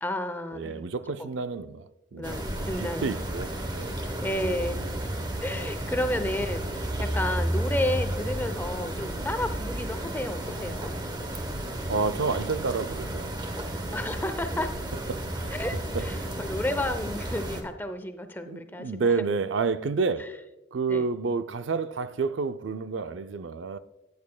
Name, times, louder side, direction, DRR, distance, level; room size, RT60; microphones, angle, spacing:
voice 1, 0.0-0.8 1.2-1.3 2.1-3.2 4.0-4.8 5.4-10.9 13.9-14.7 15.5-19.1 20.2-20.3 20.9-21.1, left 1 dB, 10° left, 0.6 m, -32 dB
voice 2, 0.5-2.5 2.8-4.1 11.5-13.3 15.1-15.5 15.9-16.4 18.4-20.4 20.7-23.8, right 4 dB, 80° right, 0.4 m, -30 dB
sound 1, 2.2-17.6, right 1 dB, 20° right, 0.9 m, -32 dB
13.0 x 9.4 x 2.2 m
head